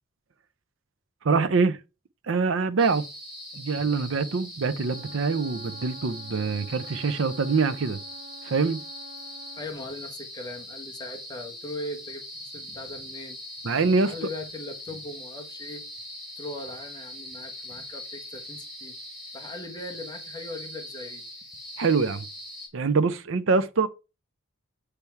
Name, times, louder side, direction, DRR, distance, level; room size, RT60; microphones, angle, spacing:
voice 1, 1.2-1.8 2.3-3.1 3.5-8.0 8.4-8.8 13.6-14.1 21.8-22.2 22.7-23.9, right 4 dB, 70° right, 0.5 m, -24 dB
sound 1, 2.8-22.7, left 1 dB, ahead, 2.4 m, -41 dB
Wind instrument woodwind instrument, 4.6-9.7, right 3 dB, 25° right, 2.2 m, -47 dB
voice 2, 9.6-13.4 14.0-15.9 16.4-19.0 19.3-21.3, left 1 dB, 20° left, 1.0 m, -39 dB
6.9 x 3.4 x 4.5 m
head